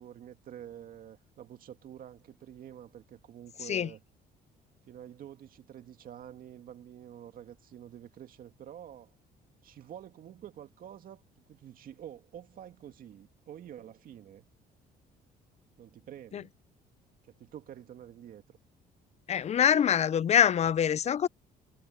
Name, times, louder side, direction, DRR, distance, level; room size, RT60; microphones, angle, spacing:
voice 1, 0.0-4.0 4.9-9.2 9.6-14.5 15.8-16.5 17.3-18.6, right 10 dB, 55° right, 2.1 m, -48 dB
voice 2, 19.3-21.3, left 9 dB, 40° left, 0.6 m, -24 dB
cardioid pair, 110°, 17 cm